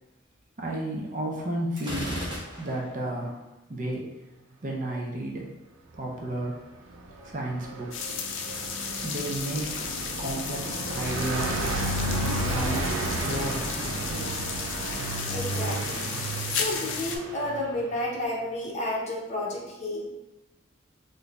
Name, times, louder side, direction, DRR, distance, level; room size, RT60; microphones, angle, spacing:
voice 1, 0.6-2.2 2.6-3.4 3.7-4.1 4.6-5.5 5.9-6.6 7.2-8.3 9.0-9.9 10.2-11.7 12.3-14.3, right 1 dB, 40° right, -2 dB, 0.6 m, -33 dB
Gunshot gunfire, 1.8-3.0, equal, 20° right, 0.9 m, -35 dB
Car passing by, 6.9-17.9, right 2 dB, 85° right, 0.4 m, -32 dB
sound 1, 7.9-17.2, left 6 dB, 70° left, 0.4 m, -34 dB
voice 2, 15.3-16.1 16.5-20.1, left 1 dB, 35° left, -3 dB, 0.7 m, -31 dB
4.0 x 2.6 x 2.3 m, 1.0 s
head